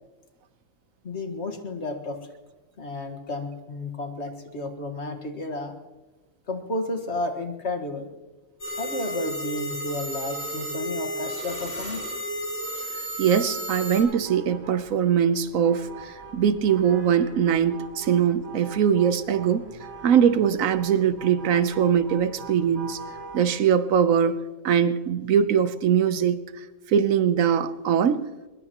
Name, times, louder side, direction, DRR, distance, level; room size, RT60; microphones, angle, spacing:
voice 1, 1.0-2.2 2.8-5.8 6.5-8.1 8.8-12.1, left 2 dB, 55° left, 5 dB, 1.9 m, -32 dB
sound 1, 8.6-14.0, right 1 dB, 80° left, 5.7 m, -32 dB
voice 2, 13.2-19.6 20.0-23.0 23.3-24.4 24.6-28.2, right 8 dB, 80° right, 12 dB, 1.2 m, -22 dB
sound 2, 14.0-23.4, right 4 dB, 50° right, 3.2 m, -43 dB
22.0 x 21.5 x 3.0 m, 1.2 s
omnidirectional pair, 1.4 m